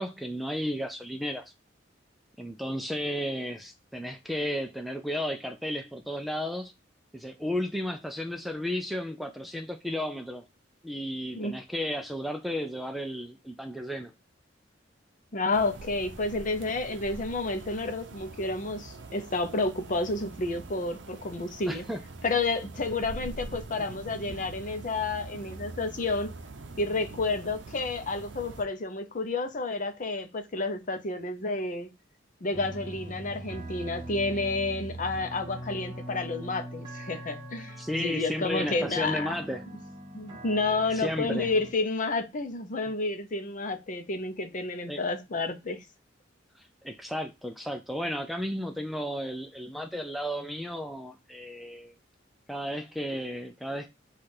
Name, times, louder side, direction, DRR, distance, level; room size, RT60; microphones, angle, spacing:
voice 1, 0.0-1.4 2.4-6.7 7.1-10.4 10.8-14.1 21.7-22.0 37.8-39.6 40.9-41.5 44.9-45.0 46.8-51.9 52.5-53.9, equal, ahead, 0.4 m, -33 dB
voice 2, 15.3-21.8 22.2-26.3 26.8-31.9 32.4-39.4 40.1-45.8, left 3 dB, 45° left, 0.6 m, -30 dB
sound 1, 15.5-28.6, right 3 dB, 70° right, 0.6 m, -44 dB
sound 2, 32.5-41.7, right 1 dB, 25° right, 1.6 m, -42 dB
4.8 x 2.4 x 4.3 m
head